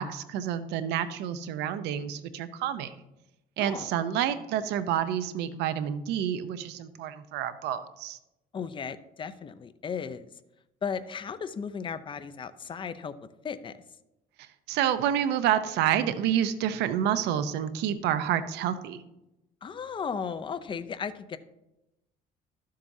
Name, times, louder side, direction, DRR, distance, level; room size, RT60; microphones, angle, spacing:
voice 1, 0.0-2.9 3.6-8.2 14.7-19.0, right 10 dB, 85° right, 12 dB, 0.7 m, -28 dB
voice 2, 3.6-3.9 8.5-10.3 10.8-13.1 13.4-13.7 19.6-21.4, left 6 dB, 30° left, 12 dB, 0.5 m, -35 dB
12.5 x 7.6 x 2.7 m, 0.91 s
cardioid pair, 110°, 17 cm